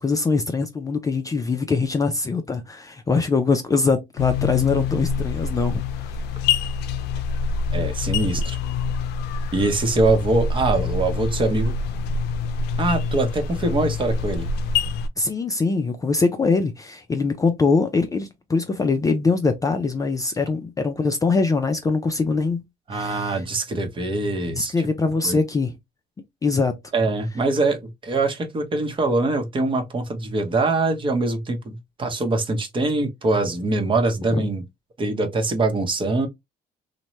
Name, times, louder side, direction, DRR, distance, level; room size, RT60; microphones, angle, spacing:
voice 1, 0.0-5.8 15.2-22.6 22.9-23.4 24.5-25.7 26.4-26.7 34.3-34.4, left 4 dB, 20° left, 0.4 m, -22 dB
sound 1, 4.2-15.1, left 5 dB, 80° left, 0.4 m, -26 dB
voice 2, 7.7-8.6 9.5-11.8 12.8-14.5 22.9-24.7 25.2-25.4 26.9-34.6 35.0-36.3, right 2 dB, 30° right, 0.8 m, -23 dB
2.8 x 2.1 x 3.0 m
cardioid pair, 110°, 17 cm